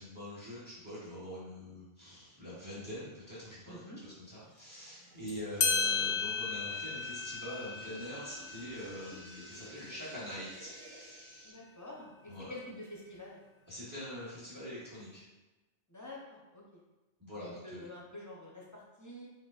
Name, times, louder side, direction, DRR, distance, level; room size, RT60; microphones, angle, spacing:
voice 1, 0.0-11.3 12.3-12.5 13.7-15.3 17.2-17.9, equal, 20° right, -9 dB, 1.0 m, -44 dB
voice 2, 3.7-4.0 11.4-13.4 15.9-16.6 17.4-19.3, left 1 dB, 20° left, -4 dB, 0.7 m, -47 dB
sound 1, 3.8-11.5, right 1 dB, 80° right, 1.5 m, -54 dB
sound 2, 5.3-5.4 5.6-10.7, left 5 dB, 55° left, 0.5 m, -35 dB
4.7 x 3.8 x 2.5 m, 1.1 s
omnidirectional pair, 1.2 m